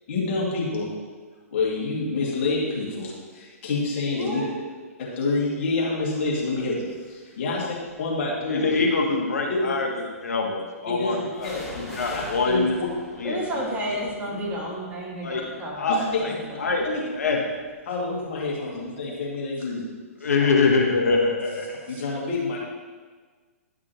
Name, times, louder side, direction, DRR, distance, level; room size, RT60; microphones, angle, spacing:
voice 1, 0.1-0.9 1.5-4.4 5.2-7.6 8.0-8.8 9.5-9.7 10.9-12.9 16.1-16.2 16.8-17.0 17.9-19.9 20.4-20.5 21.9-22.6, left 3 dB, 50° left, -4 dB, 2.3 m, -27 dB
voice 2, 4.1-4.6 13.2-16.4 16.7-16.8 21.9-22.0, equal, 20° right, -3 dB, 1.9 m, -31 dB
sound 1, 6.8-6.9 7.5-8.5 11.4-19.0 19.3-19.4, left 1 dB, ahead, 2.0 m, -45 dB
voice 3, 8.5-9.9 10.2-12.8 13.2-13.4 15.2-15.4 15.8-16.3 16.6-16.8 17.1-17.4 20.2-21.8, left 4 dB, 75° left, 1 dB, 1.0 m, -24 dB
10.5 x 6.0 x 3.0 m, 1.5 s
figure-of-eight pair, 120°, 8 cm